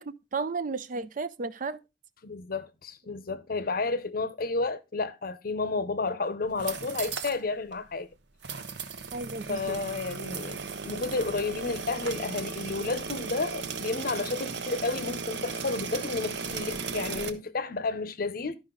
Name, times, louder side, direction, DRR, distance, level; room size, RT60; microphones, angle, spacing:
voice 1, 0.0-1.8 9.1-9.8, right 4 dB, 40° right, 0.4 m, -34 dB
voice 2, 2.2-8.1 9.5-18.6, left 3 dB, 50° left, 0.7 m, -31 dB
sound 1, 6.5-7.4 7.7-7.8 8.4-17.3, right 5 dB, 60° right, 0.8 m, -36 dB
12.0 x 5.2 x 3.7 m
head